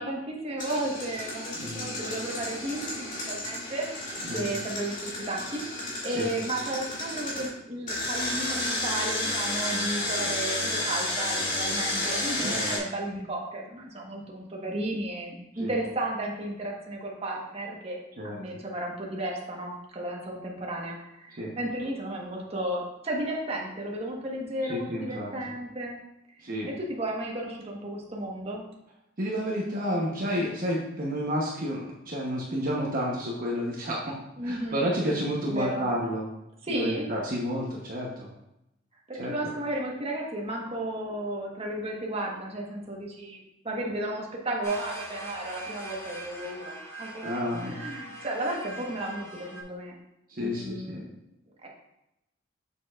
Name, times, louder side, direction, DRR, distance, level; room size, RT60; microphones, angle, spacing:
voice 1, 0.0-26.0 26.6-28.6 34.4-34.8 35.5-35.9 36.6-37.1 39.1-49.9 50.4-51.1 51.6-51.7, right 1 dB, 35° right, -1 dB, 1.3 m, -34 dB
Engine, 0.6-7.4 7.9-12.8, left 1 dB, 45° left, 2.3 m, -31 dB
voice 2, 12.4-12.7 15.6-15.7 18.2-18.4 21.4-21.5 24.6-25.3 26.4-26.7 29.2-34.1 34.4-36.2 36.7-38.3 39.2-39.5 47.2-47.8 50.3-51.0, equal, 50° right, -3 dB, 1.0 m, -30 dB
sound 1, 44.6-49.6, right 2 dB, 15° left, 1.3 m, -42 dB
6.9 x 6.8 x 2.4 m, 0.88 s
head